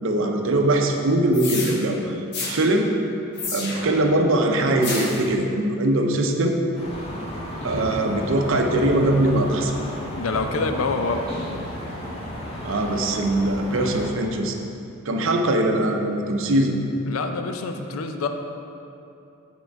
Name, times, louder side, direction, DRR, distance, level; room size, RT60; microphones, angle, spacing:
voice 1, 0.0-2.2 2.5-3.0 3.5-6.6 7.6-9.8 12.6-14.6 15.1-16.7, right 1 dB, 65° right, 3 dB, 0.6 m, -21 dB
sound 1, 1.3-1.7 2.3-2.6 3.4-4.0 4.8-5.2, left 3 dB, 50° left, 1.0 m, -30 dB
sound 2, 6.7-14.1, equal, 30° left, 1.2 m, -33 dB
voice 2, 7.7-8.0 10.2-11.3 17.1-18.3, left 3 dB, 80° left, 6 dB, 0.5 m, -26 dB
7.2 x 3.7 x 4.5 m, 2.7 s
head